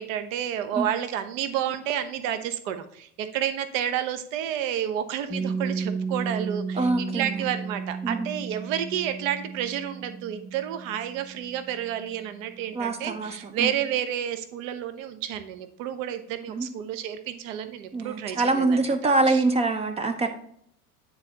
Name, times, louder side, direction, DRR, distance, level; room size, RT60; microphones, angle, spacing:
voice 1, 0.0-18.8 19.0-19.4, right 10 dB, 60° right, 10 dB, 0.9 m, -30 dB
Piano, 5.3-12.6, right 5 dB, 10° left, 0.9 m, -34 dB
voice 2, 6.7-7.4 8.0-8.3 12.7-13.7 16.5-16.7 17.9-20.3, right 3 dB, 15° right, 7 dB, 0.4 m, -25 dB
9.6 x 4.1 x 2.8 m, 0.66 s
hypercardioid pair, 80°, 45 cm